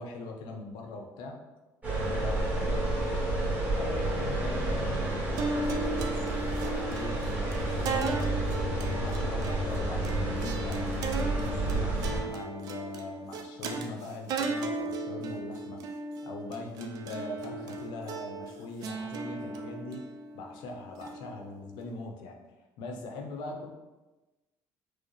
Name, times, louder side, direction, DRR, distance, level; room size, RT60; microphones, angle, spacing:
voice 1, 0.0-1.4 2.0-3.3 3.7-8.2 8.6-10.9 11.1-12.0 12.2-20.1 20.3-22.4 22.8-23.7, left 3 dB, 80° left, 2 dB, 0.6 m, -41 dB
sound 1, 1.8-12.2, right 2 dB, 20° right, 1.2 m, -30 dB
sound 2, 5.4-21.8, right 3 dB, 60° right, 0.4 m, -36 dB
4.7 x 2.1 x 3.1 m, 1.1 s
cardioid pair, 130°, 7 cm